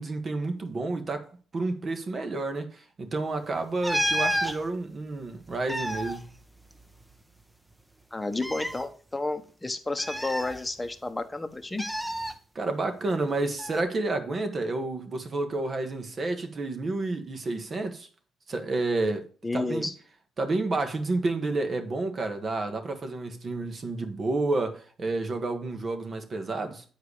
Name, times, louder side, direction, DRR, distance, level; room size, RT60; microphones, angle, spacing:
voice 1, 0.0-6.3 12.5-18.1 18.5-19.3 19.5-19.9 20.4-26.8, right 2 dB, 40° right, 1.5 m, -30 dB
sound 1, 3.8-4.6 5.5-7.2 7.4-7.5 8.3-8.8 10.0-11.0 11.8-12.3 13.6-13.8, equal, 5° right, 0.8 m, -30 dB
voice 2, 8.1-11.8 19.4-19.9, left 2 dB, 15° left, 1.0 m, -31 dB
8.4 x 4.8 x 4.8 m
cardioid pair, 90°, 0 cm